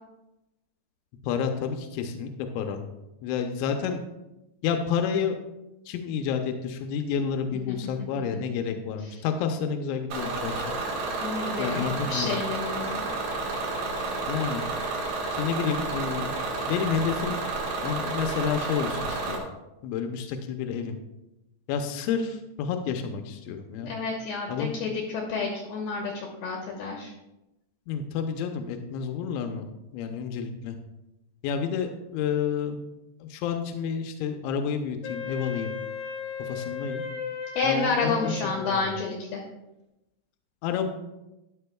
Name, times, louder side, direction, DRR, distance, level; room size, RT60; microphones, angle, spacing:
voice 1, 1.2-2.8 3.2-4.0 4.6-5.4 5.9-10.6 11.6-12.3 14.3-14.6 15.3-17.4 17.8-19.5 19.8-21.0 21.7-23.9 24.5-24.7 27.9-29.7 29.9-30.8 31.4-32.8 33.2-35.8 36.4-37.0 37.6-38.9 40.6-40.9, left 7 dB, 85° left, 5 dB, 3.1 m, -30 dB
Bus / Engine, 10.1-19.4, right 3 dB, 70° right, 3.5 m, -31 dB
voice 2, 11.2-13.0 23.8-27.1 37.6-39.4, left 4 dB, 70° left, -1 dB, 2.7 m, -30 dB
Wind instrument woodwind instrument, 35.0-39.3, left 5 dB, 55° left, 1.7 m, -36 dB
13.5 x 10.5 x 2.3 m, 0.94 s
omnidirectional pair, 5.2 m